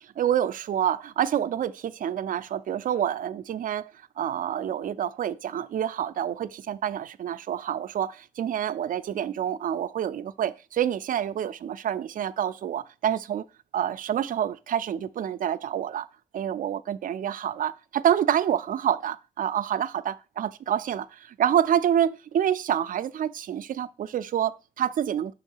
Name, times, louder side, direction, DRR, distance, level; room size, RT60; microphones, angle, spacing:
voice 1, 0.0-3.9 4.2-13.4 13.7-16.1 16.3-25.3, right 10 dB, 75° right, 0.4 m, -27 dB
5.5 x 3.6 x 5.4 m
cardioid pair, 85°, 14 cm